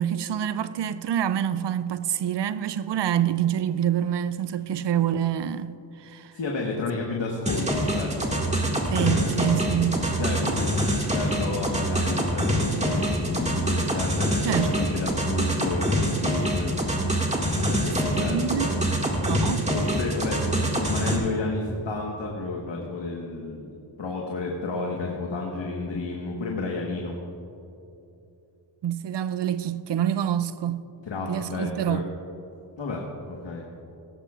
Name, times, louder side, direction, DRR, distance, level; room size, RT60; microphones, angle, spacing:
voice 1, 0.0-6.3 8.9-10.0 14.5-14.7 18.1-18.7 19.1-19.6 28.8-30.8 31.3-32.1, right 10 dB, 65° right, 0.5 m, -26 dB
voice 2, 6.3-8.4 8.9-10.8 11.1-16.8 17.4-18.8 19.7-23.7 24.0-27.2 31.0-32.0 32.8-33.7, left 3 dB, 70° left, 1.4 m, -31 dB
sound 1, 7.5-21.2, equal, 15° right, 2.0 m, -25 dB
17.0 x 14.0 x 2.4 m
cardioid pair, 55°, 46 cm